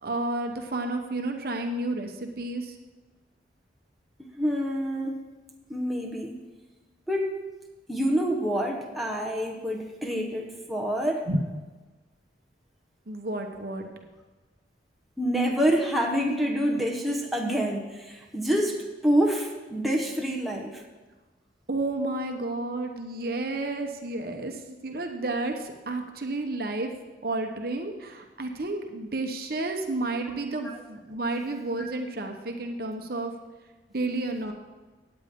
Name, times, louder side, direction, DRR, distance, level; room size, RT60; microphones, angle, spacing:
voice 1, 0.0-2.8 5.1-5.2 11.3-11.4 13.1-13.9 21.7-26.9 27.2-33.3 33.9-34.5, right 2 dB, 55° right, 4 dB, 1.1 m, -31 dB
voice 2, 4.4-5.3 5.7-6.4 7.1-7.3 7.9-11.3 15.2-20.8 30.6-30.8 31.8-31.9, equal, ahead, -1 dB, 1.2 m, -27 dB
17.0 x 8.8 x 3.8 m, 1.2 s
head